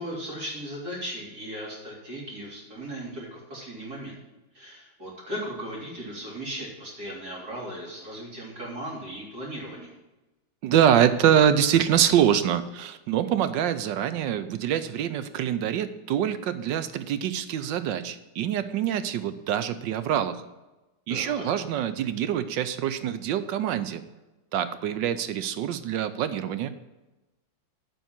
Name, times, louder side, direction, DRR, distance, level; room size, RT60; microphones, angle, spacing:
voice 1, 0.0-4.2 4.5-10.0 21.1-21.4, equal, 50° right, -4 dB, 3.9 m, -37 dB
voice 2, 10.6-20.4 21.1-24.0 24.5-26.7, right 9 dB, 75° right, 12 dB, 1.3 m, -25 dB
9.2 x 5.5 x 7.4 m, 1.1 s
omnidirectional pair, 2.1 m